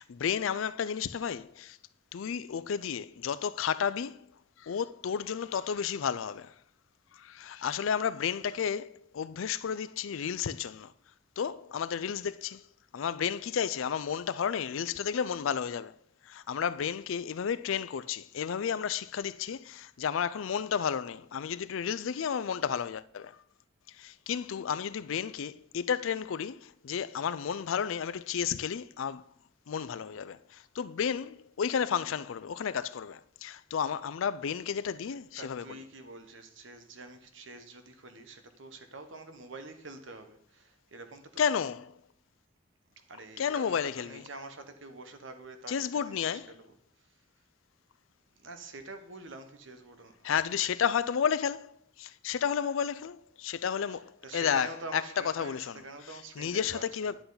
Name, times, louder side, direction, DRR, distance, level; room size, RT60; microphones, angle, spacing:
voice 1, 0.0-1.8 2.1-4.3 4.6-6.6 7.1-10.9 11.4-12.6 12.9-15.9 16.2-23.4 23.9-29.2 29.7-35.7 41.4-42.0 43.4-44.2 45.7-46.5 50.2-55.8 56.4-57.2, left 7 dB, 80° left, 0.4 m, -32 dB
voice 2, 35.4-41.2 43.1-46.7 48.4-50.2 54.2-57.1, right 2 dB, 70° right, 1.1 m, -46 dB
10.0 x 8.0 x 3.9 m
head